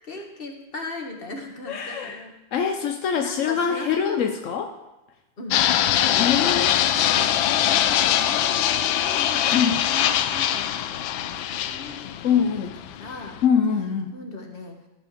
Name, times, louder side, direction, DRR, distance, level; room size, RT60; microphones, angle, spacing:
voice 1, 0.0-2.3 3.2-4.2 5.4-5.6 5.9-12.4 12.9-13.4 14.1-14.9, left 2 dB, 30° left, 2 dB, 1.7 m, -39 dB
voice 2, 1.7-2.2 2.5-4.7 6.2-6.8 9.5-9.8 12.2-12.7 13.4-14.1, left 7 dB, 65° left, 5 dB, 0.7 m, -23 dB
Fixed-wing aircraft airplane, 5.5-13.4, left 11 dB, 85° left, 1.4 m, -22 dB
14.0 x 5.1 x 7.8 m, 1.0 s
omnidirectional pair, 2.1 m